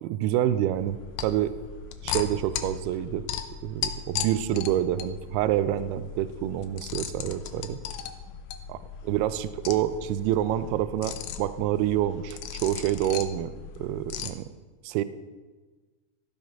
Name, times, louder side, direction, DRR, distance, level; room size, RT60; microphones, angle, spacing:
voice 1, 0.0-1.5 2.0-3.3 3.6-7.8 8.7-8.8 9.1-14.5 14.8-15.0, right 12 dB, 85° right, 13 dB, 2.2 m, -27 dB
sound 1, 0.7-14.3, left 8 dB, 85° left, 2.2 m, -37 dB
14.0 x 4.9 x 5.6 m, 1.3 s
omnidirectional pair, 4.9 m